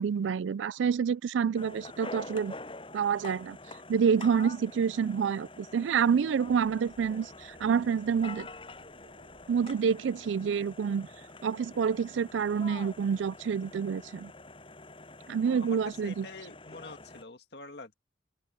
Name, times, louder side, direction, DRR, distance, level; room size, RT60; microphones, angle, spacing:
voice 1, 0.0-2.5 2.9-3.6 3.9-8.5 9.5-11.1 11.4-14.3 15.3-16.3, right 6 dB, 85° right, 0.4 m, -28 dB
sound 1, 1.6-17.2, left 2 dB, 30° left, 7.8 m, -47 dB
sound 2, 6.5-10.7, equal, 65° right, 7.0 m, -62 dB
voice 2, 15.5-17.9, left 3 dB, 60° left, 1.9 m, -46 dB
open air
head